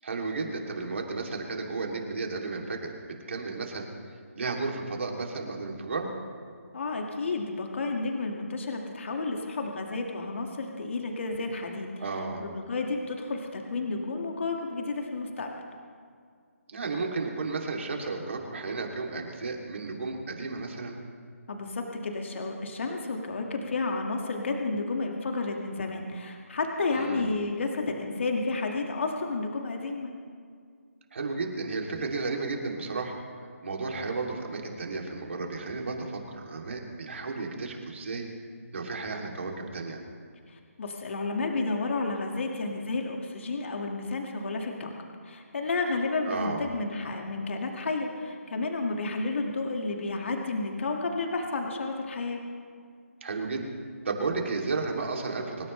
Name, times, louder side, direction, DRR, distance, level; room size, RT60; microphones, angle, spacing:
voice 1, 0.0-2.9 3.3-3.9 4.3-6.1 12.0-12.4 16.7-21.0 26.9-27.3 31.1-33.2 33.6-38.3 38.7-40.0 46.2-46.6 53.2-53.7 54.0-55.7, right 3 dB, 55° right, 0 dB, 3.0 m, -33 dB
voice 2, 6.7-12.1 12.4-15.5 21.5-30.1 40.5-44.9 45.2-52.4, left 3 dB, 55° left, 2 dB, 2.1 m, -31 dB
25.5 x 14.5 x 3.3 m, 2.1 s
hypercardioid pair, 165°, 8 cm